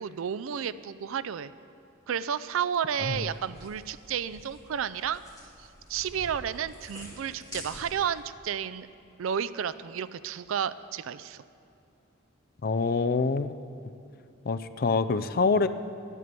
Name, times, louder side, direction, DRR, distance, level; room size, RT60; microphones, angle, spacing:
voice 1, 0.0-1.5 2.1-5.2 5.6-8.9 9.2-11.4, right 8 dB, 75° right, 15 dB, 0.4 m, -32 dB
sound 1, 3.0-8.2, left 1 dB, 20° left, 3.1 m, -47 dB
voice 2, 12.6-13.5 14.5-15.7, left 4 dB, 45° left, 11 dB, 0.4 m, -25 dB
11.0 x 9.5 x 6.8 m, 2.6 s
head